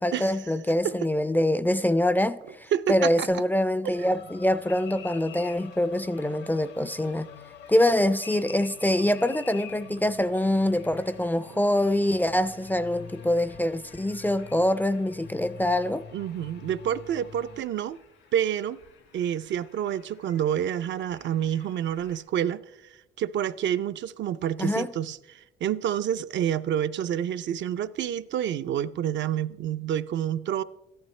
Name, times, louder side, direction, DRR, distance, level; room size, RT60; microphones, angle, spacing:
voice 1, 0.0-7.3 7.7-16.0 24.6-24.9, left 1 dB, 10° left, 0.3 m, -25 dB
sound 1, 0.9-1.2 1.6-2.0 2.4-2.6 3.2-4.1 4.7-5.0 5.4-5.8 6.3-6.7 7.1-7.4 7.7-8.1 8.5-8.9 9.3-9.6 10.0-10.3 10.7-11.2 11.5-11.8 12.3-12.6, right 5 dB, 80° right, 2.0 m, -53 dB
voice 2, 2.7-3.3 16.1-18.0 18.3-18.8 19.1-22.6 23.2-30.6, right 10 dB, 65° right, 0.5 m, -28 dB
sound 2, 3.9-17.6, left 7 dB, 60° left, 0.8 m, -47 dB
sound 3, 4.7-22.2, left 7 dB, 80° left, 2.3 m, -52 dB
14.0 x 12.0 x 3.2 m
cardioid pair, 90°, 20 cm